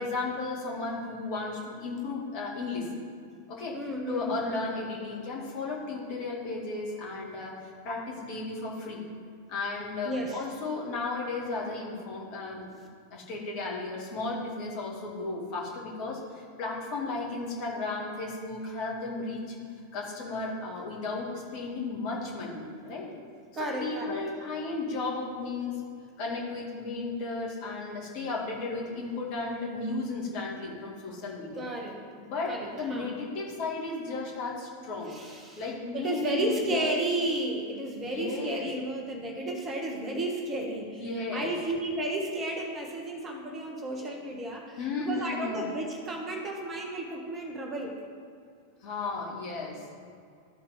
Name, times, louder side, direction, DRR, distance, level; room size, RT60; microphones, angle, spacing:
voice 1, 0.0-2.9 3.5-3.8 4.1-9.0 9.5-12.7 13.1-19.4 19.9-23.1 23.5-25.8 26.2-31.6 32.2-35.1 35.6-36.9 38.0-38.7 40.9-41.5 44.8-45.7 48.8-49.9, left 3 dB, 45° left, -3 dB, 2.1 m, -34 dB
voice 2, 3.7-4.4 10.0-10.5 23.5-24.2 31.6-32.0 32.5-33.1 35.0-35.6 35.9-48.0, right 1 dB, 25° right, 0 dB, 1.4 m, -33 dB
13.0 x 4.3 x 5.1 m, 2.3 s
figure-of-eight pair, 90°, 0 cm